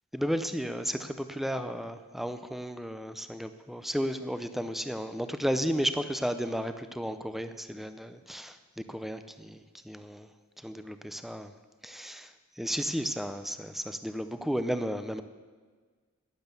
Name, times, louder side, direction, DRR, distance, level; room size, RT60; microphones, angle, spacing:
voice 1, 0.1-10.3 10.6-11.5 11.8-15.2, equal, ahead, 10 dB, 0.6 m, -33 dB
12.0 x 10.0 x 7.0 m, 1.5 s
head